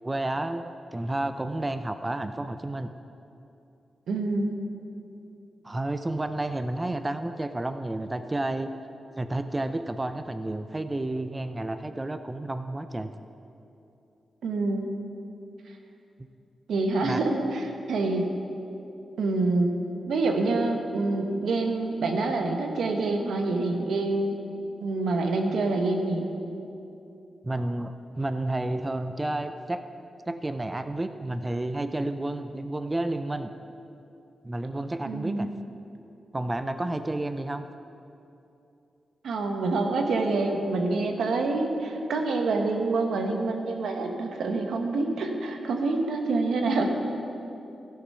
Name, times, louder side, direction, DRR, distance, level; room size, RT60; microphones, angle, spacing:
voice 1, 0.0-2.9 5.6-8.7 9.2-13.1 17.0-17.2 27.4-29.8 30.3-33.5 34.4-35.5 36.3-37.7, right 2 dB, 20° right, 9 dB, 0.4 m, -31 dB
voice 2, 4.1-4.6 14.4-14.9 16.7-18.3 19.2-19.7 20.1-24.4 24.8-26.3 35.1-35.5 39.2-46.9, right 3 dB, 85° right, 4 dB, 1.2 m, -26 dB
16.0 x 6.9 x 5.5 m, 2.8 s
cardioid pair, 90°, 0 cm